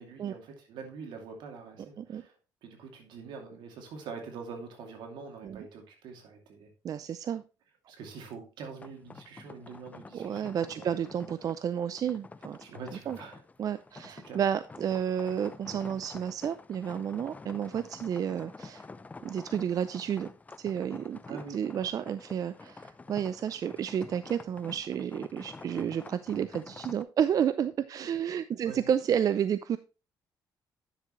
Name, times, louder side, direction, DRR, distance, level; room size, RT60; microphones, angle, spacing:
voice 1, 0.0-2.3 2.6-6.7 7.9-10.9 12.6-13.4 14.2-14.4 17.7-17.8 21.3-21.6 28.0-28.1 28.7-28.9, right 5 dB, 80° right, 3 dB, 2.6 m, -45 dB
voice 2, 6.8-7.4 10.1-12.6 13.1-13.2 13.6-18.8 19.2-20.3 20.6-29.8, right 8 dB, 50° right, 14 dB, 0.4 m, -31 dB
sound 1, 8.8-27.0, left 3 dB, 20° left, 0.5 m, -48 dB
10.0 x 6.8 x 3.1 m, 0.31 s
cardioid pair, 100°, 8 cm